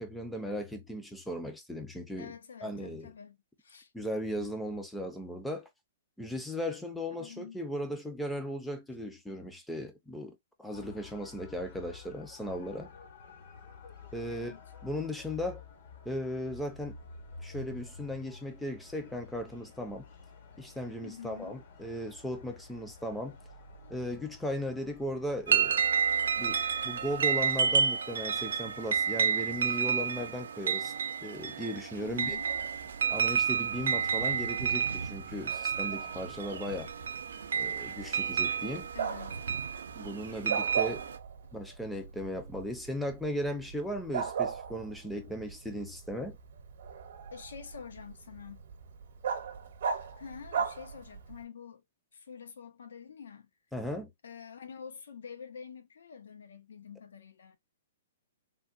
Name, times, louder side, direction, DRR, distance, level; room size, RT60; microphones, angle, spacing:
voice 1, 0.0-2.3 2.6-3.1 3.9-5.7 6.2-12.9 14.1-14.5 14.8-15.6 16.0-17.0 17.4-20.1 20.6-23.4 23.9-25.8 26.4-30.9 31.2-32.4 33.1-36.9 37.5-38.9 40.0-41.1 41.5-46.4 53.7-54.1, equal, ahead, 0.5 m, -37 dB
voice 2, 2.2-3.9 7.2-7.6 14.3-14.6 21.0-21.6 32.0-32.5 38.9-39.4 47.3-48.6 50.2-51.8 52.1-53.5 54.2-57.6, left 7 dB, 85° left, 0.7 m, -47 dB
sound 1, 10.7-27.9, left 4 dB, 45° left, 0.8 m, -50 dB
sound 2, 25.5-41.2, right 7 dB, 85° right, 0.5 m, -30 dB
Bark, 32.1-51.4, right 7 dB, 60° right, 0.8 m, -40 dB
3.3 x 2.2 x 2.5 m
hypercardioid pair, 165°, 0 cm